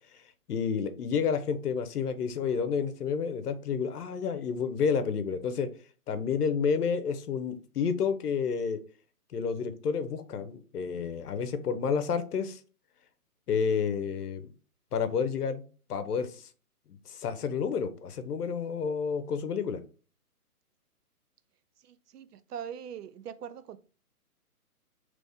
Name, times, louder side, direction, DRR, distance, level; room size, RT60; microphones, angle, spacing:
voice 1, 0.5-5.7 6.1-8.8 9.3-12.6 13.5-14.5 14.9-15.6 15.9-16.5 17.1-19.8, left 6 dB, 80° left, 0.7 m, -30 dB
voice 2, 21.8-23.8, right 8 dB, 85° right, 0.5 m, -42 dB
3.4 x 3.0 x 2.6 m
hypercardioid pair, 155°, 45 cm